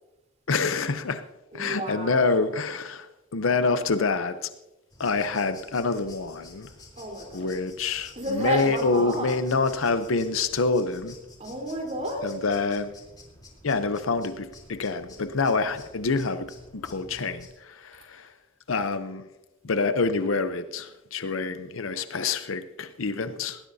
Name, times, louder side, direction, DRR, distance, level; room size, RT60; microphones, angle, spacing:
voice 1, 0.5-1.2 1.5-3.1 3.3-4.5 5.0-6.7 7.3-11.2 12.2-12.9 13.6-18.3 18.7-19.2 19.6-23.6, left 4 dB, 75° left, 0.7 m, -26 dB
voice 2, 1.5-2.4 7.0-7.5 8.2-9.3 11.4-12.3, right 1 dB, 35° right, 3.9 m, -31 dB
sound 1, 4.9-17.5, left 2 dB, 20° left, 3.6 m, -50 dB
19.5 x 18.0 x 2.8 m
head